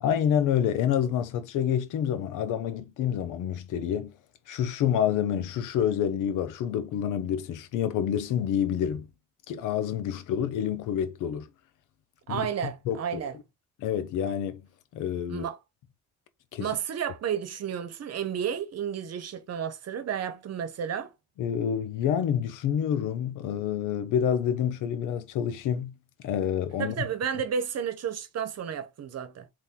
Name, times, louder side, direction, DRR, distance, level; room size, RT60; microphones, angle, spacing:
voice 1, 0.0-4.1 4.5-9.1 9.5-11.5 12.3-13.0 13.8-14.6 14.9-15.4 16.5-16.7 21.4-25.9 26.2-26.9, left 9 dB, 90° left, 0.8 m, -28 dB
voice 2, 12.3-13.3 15.3-15.6 16.6-21.1 26.8-29.5, right 8 dB, 55° right, 1.0 m, -32 dB
4.1 x 3.2 x 3.7 m
cardioid pair, 90°, 30 cm